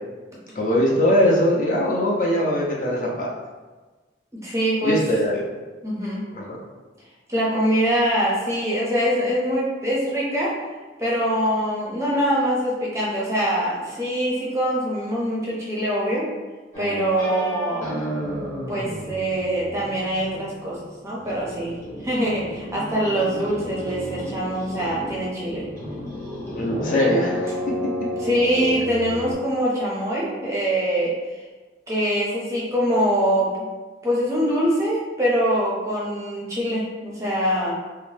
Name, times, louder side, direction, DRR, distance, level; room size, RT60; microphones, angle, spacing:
voice 1, 0.5-3.3 4.8-5.4 6.3-6.6 26.5-27.5, left 1 dB, 45° left, -4 dB, 0.5 m, -21 dB
voice 2, 4.4-5.0 5.8-6.2 7.3-10.5 11.0-16.2 16.8-17.9 18.7-20.8 21.0-21.7 22.0-25.6 28.2-31.1 31.9-33.5 34.0-37.7, equal, 15° right, -5 dB, 0.5 m, -23 dB
sound 1, 16.7-20.8 21.1-29.3, equal, 15° left, 0.8 m, -32 dB
2.6 x 2.0 x 3.2 m, 1.3 s
head